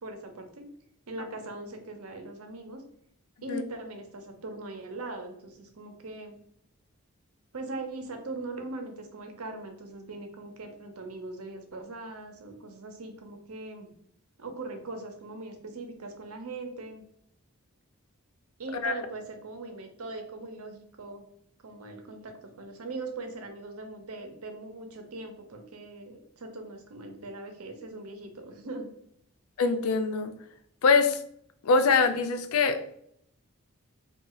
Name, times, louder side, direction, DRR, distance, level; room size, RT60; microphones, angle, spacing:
voice 1, 0.0-0.7 1.1-2.8 3.4-6.3 7.5-13.9 14.4-17.0 18.6-21.3 21.6-28.9, right 2 dB, 85° right, 5 dB, 0.7 m, -40 dB
voice 2, 29.6-30.3 30.8-31.2 31.6-33.0, left 4 dB, 85° left, 9 dB, 0.4 m, -23 dB
3.0 x 2.4 x 3.8 m, 0.69 s
head